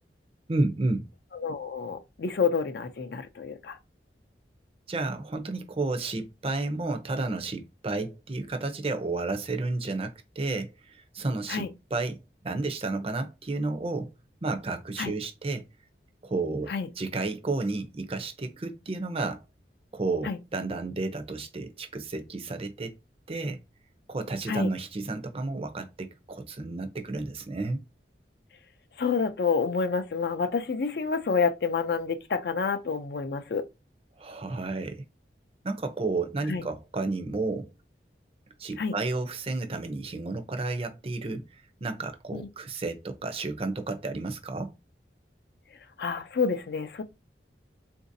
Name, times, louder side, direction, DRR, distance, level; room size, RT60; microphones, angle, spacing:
voice 1, 0.5-1.1 4.9-11.6 11.9-12.2 12.4-14.1 14.4-15.7 16.2-19.4 19.9-23.0 23.3-23.6 24.1-27.8 34.2-35.0 35.6-37.7 38.6-44.7, right 3 dB, 35° right, 0.5 m, -31 dB
voice 2, 1.4-3.8 11.5-11.7 15.0-15.1 16.7-16.9 20.2-20.4 24.5-24.7 29.0-33.6 36.5-36.6 38.8-38.9 42.3-42.5 46.0-47.0, left 5 dB, 60° left, 0.4 m, -28 dB
3.8 x 2.6 x 2.6 m
head